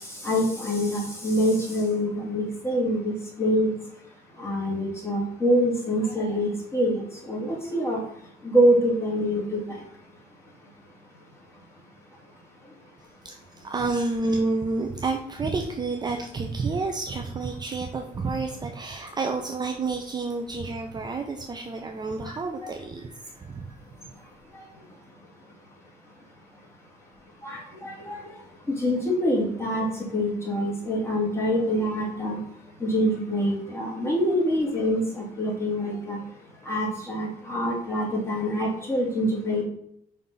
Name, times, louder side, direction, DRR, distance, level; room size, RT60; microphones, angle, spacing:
voice 1, 0.2-3.1 3.4-3.8 4.4-8.0 8.4-9.6 22.3-22.7 27.4-28.2 28.8-29.9 30.1-32.4 32.8-36.2 36.7-39.6, equal, 15° left, -4 dB, 2.6 m, -25 dB
voice 2, 13.2-23.8, right 3 dB, 25° right, 3 dB, 0.7 m, -30 dB
5.7 x 3.6 x 5.4 m, 0.74 s
cardioid pair, 110°, 17 cm